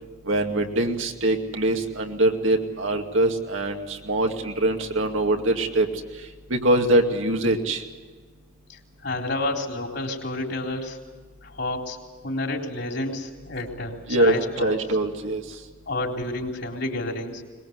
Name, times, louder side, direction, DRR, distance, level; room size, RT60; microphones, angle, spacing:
voice 1, 0.2-5.9 6.5-7.8 14.1-15.6, right 1 dB, 70° right, 3 dB, 2.4 m, -23 dB
voice 2, 8.7-11.0 11.4-12.0 12.2-14.8 15.9-17.4, left 2 dB, 55° left, 2 dB, 3.7 m, -30 dB
22.5 x 21.5 x 8.1 m, 1.4 s
head